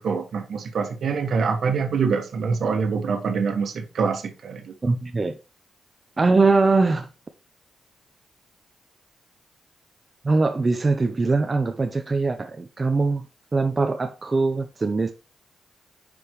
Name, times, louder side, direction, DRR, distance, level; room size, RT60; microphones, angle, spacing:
voice 1, 0.0-4.7, right 5 dB, 70° right, 1.4 m, -25 dB
voice 2, 4.8-5.3 6.2-7.1 10.2-13.3 13.5-15.1, right 3 dB, 35° right, 0.6 m, -22 dB
9.6 x 5.2 x 3.1 m
cardioid pair, 65°, 0 cm